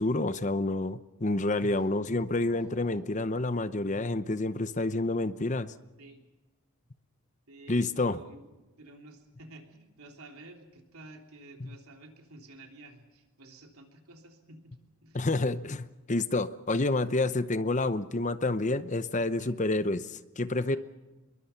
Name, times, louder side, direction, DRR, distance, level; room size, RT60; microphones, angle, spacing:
voice 1, 0.0-5.7 7.7-8.2 11.6-11.8 15.1-20.8, left 2 dB, 35° left, 13 dB, 0.8 m, -29 dB
Keyboard (musical), 1.5-4.8, equal, 5° right, 7.3 m, -61 dB
voice 2, 7.5-8.5 8.8-14.8 15.0-15.3 19.4-19.5 20.7-20.8, right 2 dB, 85° right, 3 dB, 3.4 m, -51 dB
27.0 x 22.0 x 5.9 m, 1.1 s
head